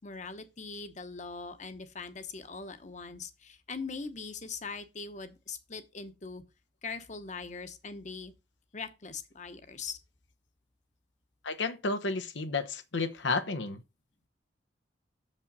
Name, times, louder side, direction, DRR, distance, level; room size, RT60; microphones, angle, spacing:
voice 1, 0.0-6.4 6.8-8.3 8.7-10.0, left 4 dB, 40° left, 1.0 m, -41 dB
voice 2, 11.4-13.8, left 3 dB, 85° left, 0.9 m, -32 dB
7.1 x 5.3 x 5.4 m
head